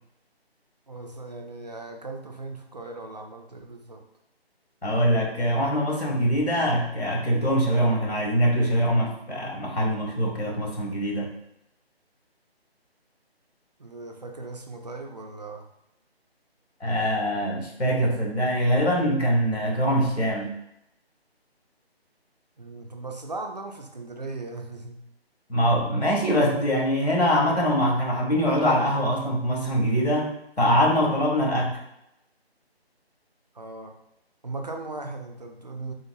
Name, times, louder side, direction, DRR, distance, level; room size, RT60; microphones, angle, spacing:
voice 1, 0.9-4.0 13.8-15.7 22.6-25.0 33.5-33.9 34.4-35.9, right 3 dB, 45° right, 3 dB, 0.4 m, -38 dB
voice 2, 4.8-11.3 16.8-20.5 25.5-30.3 30.6-31.8, equal, 85° left, -1 dB, 1.4 m, -23 dB
3.8 x 2.6 x 2.6 m, 0.82 s
figure-of-eight pair, 155°, 32 cm